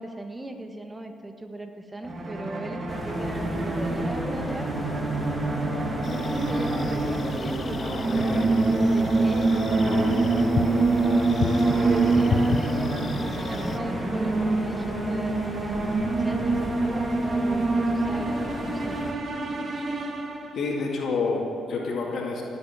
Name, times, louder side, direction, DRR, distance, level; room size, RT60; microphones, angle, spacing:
voice 1, 0.0-4.9 5.6-11.2 11.6-15.3 16.2-19.0, right 1 dB, 15° right, 5 dB, 1.3 m, -37 dB
sound 1, 2.0-20.8, right 3 dB, 45° right, 1.7 m, -26 dB
sound 2, 2.9-19.1, left 2 dB, 20° left, 1.6 m, -36 dB
sound 3, 6.0-13.8, left 5 dB, 45° left, 0.7 m, -34 dB
voice 2, 7.9-8.4 20.5-22.4, left 4 dB, 60° left, -1 dB, 2.3 m, -29 dB
17.0 x 8.1 x 8.0 m, 2.8 s
cardioid pair, 90°, 0 cm